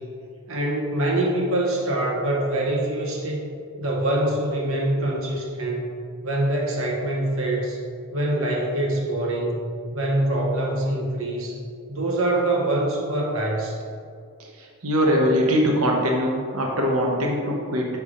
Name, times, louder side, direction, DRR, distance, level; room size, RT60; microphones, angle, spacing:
voice 1, 0.5-3.5 3.8-7.8 8.1-9.6 9.9-11.6 11.9-13.8, right 1 dB, 65° right, -2 dB, 1.1 m, -24 dB
voice 2, 14.6-17.9, equal, 90° right, -1 dB, 0.8 m, -22 dB
5.6 x 3.4 x 4.8 m, 2.3 s
head